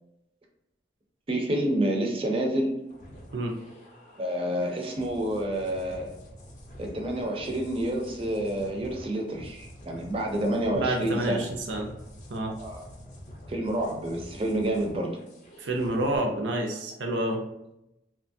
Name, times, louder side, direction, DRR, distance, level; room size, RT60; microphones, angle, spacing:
voice 1, 1.3-2.7 4.2-6.1 6.8-11.5 12.6-12.8 13.5-15.2, right 1 dB, 30° right, 1 dB, 0.4 m, -28 dB
sound 1, 2.9-16.2, equal, 40° left, 0.4 m, -47 dB
voice 2, 10.7-11.9 12.3-12.5 15.6-17.4, right 1 dB, 85° right, 2 dB, 0.5 m, -28 dB
2.9 x 2.2 x 2.6 m, 0.86 s
head